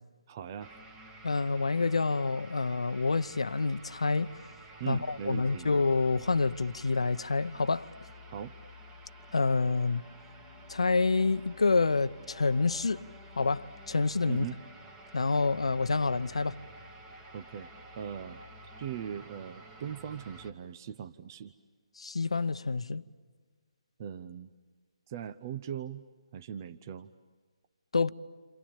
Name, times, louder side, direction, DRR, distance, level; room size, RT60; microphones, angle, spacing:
voice 1, 0.3-0.8 4.8-5.7 8.3-8.6 14.3-14.6 17.3-17.7 18.0-18.4 18.8-21.5 24.0-24.5 25.1-26.0 26.3-27.1, right 9 dB, 35° right, 0.8 m, -39 dB
sound 1, 0.6-20.5, equal, 15° right, 1.8 m, -51 dB
voice 2, 1.2-4.3 4.9-7.9 9.3-10.0 10.7-13.0 13.4-14.5 15.1-16.6 22.0-23.0 27.9-28.1, left 3 dB, 80° left, 0.9 m, -28 dB
29.5 x 27.0 x 7.2 m
figure-of-eight pair, 150°, 3 cm